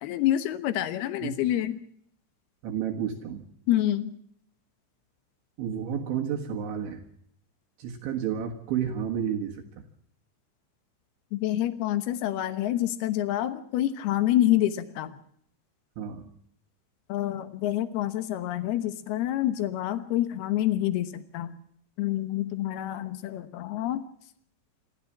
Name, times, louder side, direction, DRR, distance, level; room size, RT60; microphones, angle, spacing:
voice 1, 0.0-1.8 3.7-4.1 11.3-15.2 17.1-21.6 22.0-24.0, left 13 dB, 75° left, 12 dB, 2.4 m, -27 dB
voice 2, 2.6-3.5 5.6-7.0 7.8-9.8 16.0-16.3, right 8 dB, 70° right, 1 dB, 3.8 m, -31 dB
27.0 x 14.0 x 7.4 m, 0.68 s
omnidirectional pair, 6.0 m